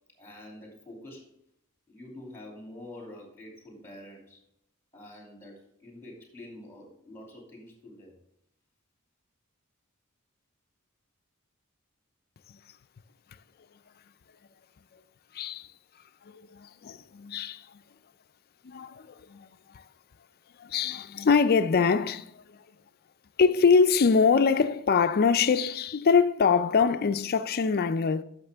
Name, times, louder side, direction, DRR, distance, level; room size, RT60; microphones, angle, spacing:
voice 1, 0.2-1.3 1.9-4.4 4.9-8.2, left 1 dB, 10° left, 2.7 m, -46 dB
voice 2, 15.3-15.7 16.3-17.8 18.6-19.8 20.6-22.6 23.4-28.2, left 5 dB, 45° left, 0.4 m, -24 dB
10.5 x 6.6 x 3.4 m
head